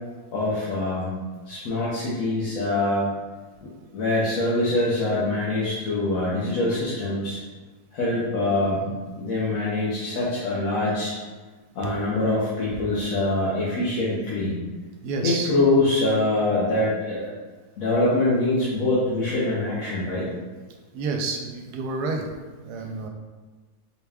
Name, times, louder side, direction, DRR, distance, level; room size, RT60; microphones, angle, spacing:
voice 1, 0.3-1.1 1.5-3.1 3.6-7.4 7.9-11.1 11.7-14.6 15.2-17.3 17.8-20.3, left 2 dB, 60° left, -9 dB, 1.2 m, -24 dB
voice 2, 15.0-15.5 20.9-22.3 22.6-23.1, right 3 dB, 85° right, 2 dB, 1.1 m, -29 dB
4.4 x 2.3 x 3.4 m, 1.3 s
omnidirectional pair, 1.7 m